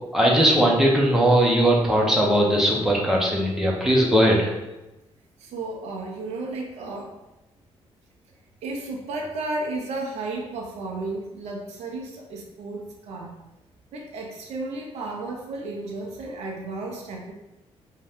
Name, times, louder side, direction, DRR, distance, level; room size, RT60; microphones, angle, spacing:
voice 1, 0.1-4.5, right 1 dB, 5° right, -3 dB, 0.7 m, -19 dB
voice 2, 5.4-7.1 8.6-13.3 13.9-17.3, right 2 dB, 85° right, 0 dB, 0.6 m, -33 dB
2.7 x 2.2 x 3.4 m, 0.98 s
cardioid pair, 95°, 11 cm